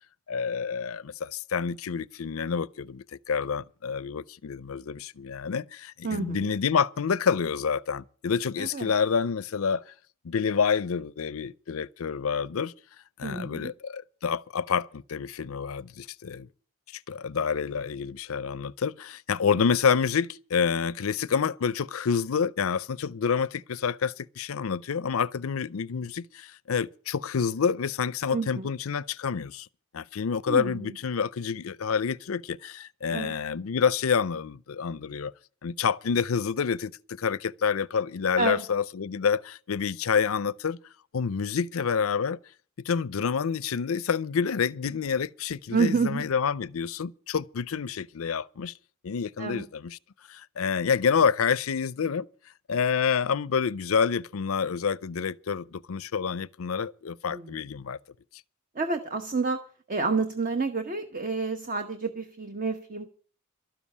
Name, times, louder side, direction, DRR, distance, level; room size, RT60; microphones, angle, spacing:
voice 1, 0.3-9.9 10.2-12.7 13.2-16.5 16.9-29.7 29.9-35.3 35.6-40.8 41.1-42.4 42.8-48.7 49.0-50.0 50.3-52.3 52.7-58.0, left 6 dB, 75° left, 0.5 m, -28 dB
voice 2, 6.0-6.5 8.6-8.9 13.2-13.7 28.3-28.7 30.5-31.0 33.1-33.3 38.4-38.6 45.7-46.2 49.4-49.6 57.3-57.6 58.7-59.6 59.9-63.1, right 4 dB, 40° right, 1.1 m, -29 dB
13.0 x 7.3 x 9.8 m
head